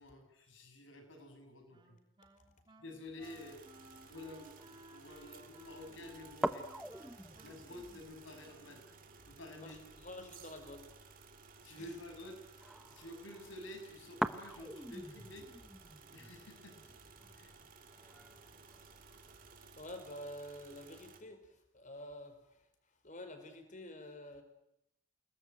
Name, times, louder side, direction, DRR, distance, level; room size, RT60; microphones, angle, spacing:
voice 1, 0.0-2.0 2.8-3.6 4.1-6.7 7.4-8.8 9.3-9.8 11.6-15.5 16.1-16.8 17.3-17.5, left 1 dB, 65° left, 6 dB, 6.7 m, -50 dB
Wind instrument woodwind instrument, 1.7-9.1, right 1 dB, 25° right, 3.6 m, -60 dB
sound 1, 3.2-21.2, right 5 dB, 45° right, 3.1 m, -58 dB
sound 2, 3.7-19.6, equal, ahead, 1.1 m, -46 dB
voice 2, 9.6-10.9 11.7-11.9 19.8-22.6 23.0-24.4, left 1 dB, 40° left, 8 dB, 4.8 m, -49 dB
28.5 x 20.5 x 9.1 m, 0.80 s
head